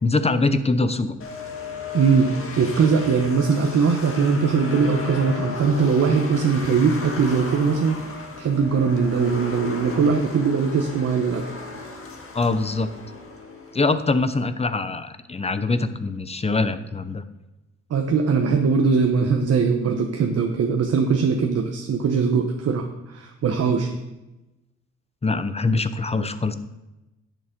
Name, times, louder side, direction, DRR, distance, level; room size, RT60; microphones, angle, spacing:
voice 1, 0.0-1.1 12.3-12.9 13.7-17.2 25.2-26.5, left 3 dB, 20° left, 11 dB, 0.8 m, -23 dB
sound 1, 1.2-14.2, left 3 dB, 45° left, 1.8 m, -35 dB
voice 2, 1.9-8.0 8.4-11.6 17.9-23.9, right 5 dB, 55° right, 3 dB, 1.1 m, -21 dB
10.0 x 7.1 x 5.2 m, 1.0 s
cardioid pair, 90°, 30 cm